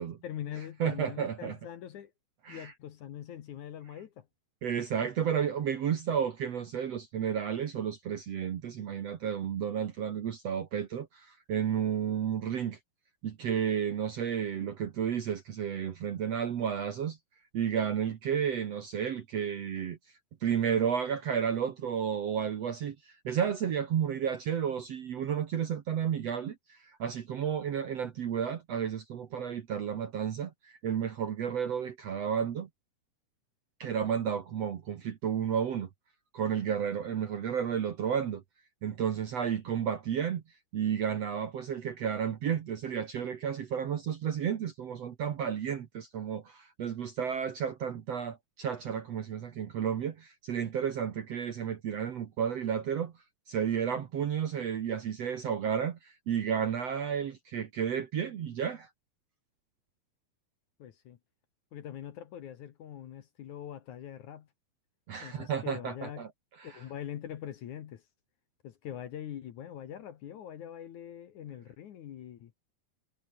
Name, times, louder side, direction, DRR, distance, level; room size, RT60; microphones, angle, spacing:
voice 1, 0.2-2.1 2.5-4.3 60.8-61.2 61.7-64.5 65.2-66.3 66.6-68.0 68.6-72.5, left 10 dB, 60° left, 2.4 m, -43 dB
voice 2, 0.8-1.6 2.4-2.7 4.6-12.8 13.2-17.2 17.5-20.0 20.4-32.7 33.8-35.9 36.3-38.4 38.8-40.4 40.7-53.1 53.5-58.9 65.1-66.3 66.6-66.8, right 8 dB, 55° right, 1.9 m, -32 dB
omnidirectional pair, 4.5 m